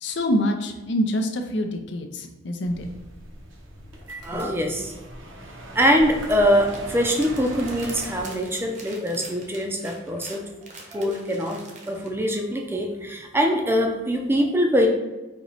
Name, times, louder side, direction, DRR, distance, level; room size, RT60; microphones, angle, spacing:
voice 1, 0.0-2.9, equal, 65° left, 4 dB, 0.6 m, -26 dB
sound 1, 2.6-8.2, right 1 dB, 85° right, 0.9 m, -39 dB
voice 2, 4.2-4.9 5.7-10.4 10.9-11.6 11.9-14.9, equal, 10° right, 2 dB, 0.5 m, -23 dB
sound 2, 6.4-12.1, right 3 dB, 40° right, 0.8 m, -45 dB
4.5 x 2.9 x 4.1 m, 1.2 s
head